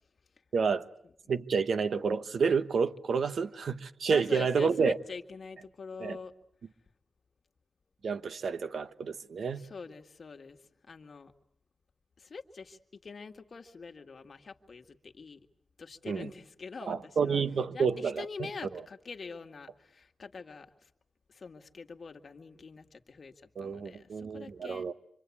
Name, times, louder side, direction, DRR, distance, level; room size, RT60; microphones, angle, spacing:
voice 1, 0.5-0.9 1.3-5.0 6.0-6.2 8.0-9.6 16.1-16.3 16.9-18.5 23.6-24.9, right 5 dB, 75° right, 1.2 m, -29 dB
voice 2, 4.1-6.3 9.5-11.3 12.2-15.4 15.8-17.4 17.7-20.9 21.3-24.8, left 4 dB, 50° left, 1.9 m, -45 dB
27.0 x 25.0 x 8.5 m
wide cardioid pair, 115°, 0 cm